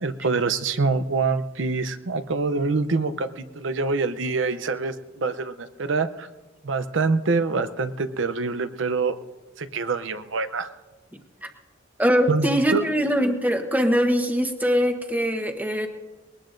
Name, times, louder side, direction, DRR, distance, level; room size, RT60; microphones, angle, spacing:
voice 1, 0.0-6.3 6.6-9.2 9.6-10.7 12.3-12.8, right 4 dB, 65° right, 11 dB, 0.7 m, -25 dB
voice 2, 12.0-15.9, equal, 10° right, 5 dB, 1.1 m, -22 dB
21.0 x 19.0 x 2.6 m, 1.2 s
head